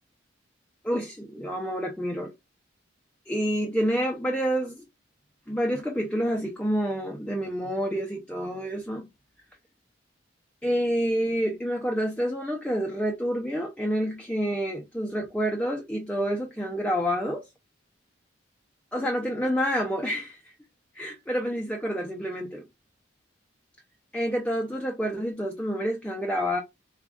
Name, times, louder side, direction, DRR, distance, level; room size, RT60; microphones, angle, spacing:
voice 1, 0.8-2.3 3.3-4.9 5.5-9.1 10.6-17.5 18.9-20.4 20.9-22.6 24.1-26.6, equal, 5° left, 0.5 m, -28 dB
3.7 x 3.6 x 2.3 m
head